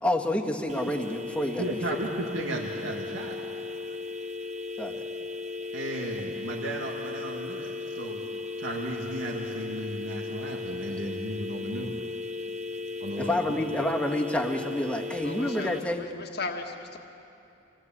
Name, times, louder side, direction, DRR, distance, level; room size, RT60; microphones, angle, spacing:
voice 1, 0.0-1.8 4.8-5.0 13.2-16.0, left 1 dB, 5° left, 2 dB, 1.5 m, -28 dB
sound 1, 0.7-15.8, left 3 dB, 35° right, 0.9 m, -36 dB
voice 2, 1.6-3.4 5.7-8.2 8.6-12.0 13.0-13.3, right 1 dB, 80° right, -1 dB, 2.0 m, -34 dB
voice 3, 15.2-17.0, left 3 dB, 60° left, 3 dB, 1.6 m, -37 dB
26.0 x 18.0 x 8.7 m, 2.7 s
head